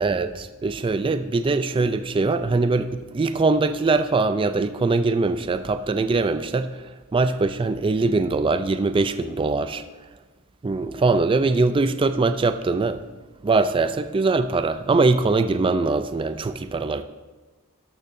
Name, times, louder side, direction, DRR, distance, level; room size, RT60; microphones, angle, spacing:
voice 1, 0.0-6.7 7.1-9.8 10.6-13.0 13.4-17.0, right 3 dB, 25° right, 10 dB, 0.3 m, -22 dB
13.0 x 11.5 x 2.6 m, 1.3 s
head